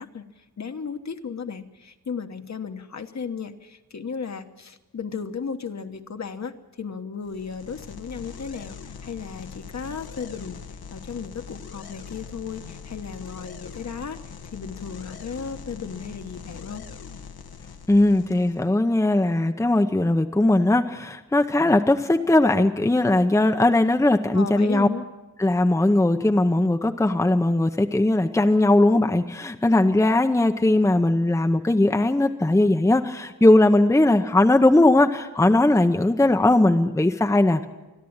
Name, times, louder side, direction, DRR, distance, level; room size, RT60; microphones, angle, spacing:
voice 1, 0.0-10.6 10.9-14.2 14.5-16.8 24.3-25.1, left 6 dB, 45° left, 7 dB, 1.3 m, -35 dB
sound 1, 7.2-18.7, left 6 dB, 75° left, 1.3 m, -41 dB
voice 2, 17.9-24.9 25.4-37.7, left 2 dB, 10° left, 6 dB, 0.8 m, -19 dB
28.0 x 11.0 x 8.8 m, 1.1 s
wide cardioid pair, 140°, 38 cm